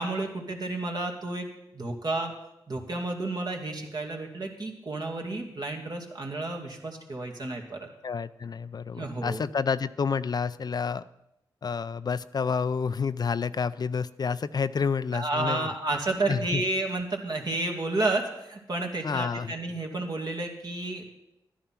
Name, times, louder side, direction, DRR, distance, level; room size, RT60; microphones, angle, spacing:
voice 1, 0.0-2.3 2.7-7.9 8.9-9.4 15.1-21.0, right 2 dB, 55° right, 1 dB, 2.4 m, -31 dB
voice 2, 8.0-11.0 11.6-15.7 16.3-16.6 19.0-19.5, left 5 dB, 55° left, 14 dB, 0.5 m, -29 dB
12.0 x 10.0 x 6.0 m, 0.88 s
cardioid pair, 50°, 8 cm